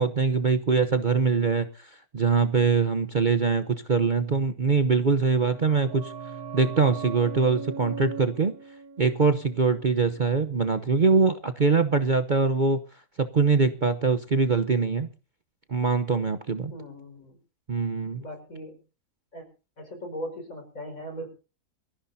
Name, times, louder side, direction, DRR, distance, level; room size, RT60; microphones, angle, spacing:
voice 1, 0.0-6.1 6.5-8.6 9.0-12.8 13.2-15.1 15.7-16.7 17.7-18.2, right 4 dB, 35° right, 10 dB, 0.9 m, -23 dB
sound 1, 5.2-10.6 10.9-11.0, right 5 dB, 85° right, 1.8 m, -40 dB
voice 2, 16.7-17.4 18.2-18.8 19.3-19.5 19.8-21.3, equal, 60° left, 5 dB, 5.6 m, -38 dB
24.5 x 15.0 x 2.7 m, 0.35 s
omnidirectional pair, 1.6 m